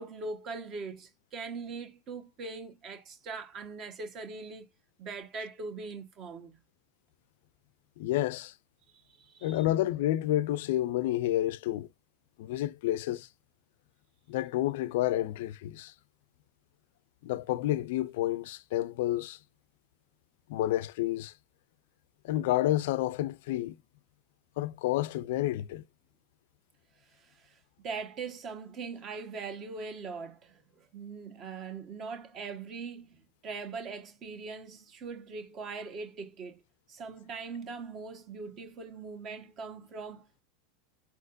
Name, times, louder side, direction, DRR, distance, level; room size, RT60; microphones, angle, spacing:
voice 1, 0.0-4.7 5.0-6.6 8.9-9.6 27.2-27.6 27.8-36.6 36.9-40.4, right 4 dB, 45° right, 1.3 m, -41 dB
voice 2, 8.0-8.5 9.4-11.9 12.4-13.3 14.3-15.9 17.2-19.4 20.5-21.3 22.2-23.8 24.6-25.8, left 14 dB, 70° left, 0.4 m, -30 dB
4.2 x 4.2 x 2.6 m
hypercardioid pair, 100°, 0 cm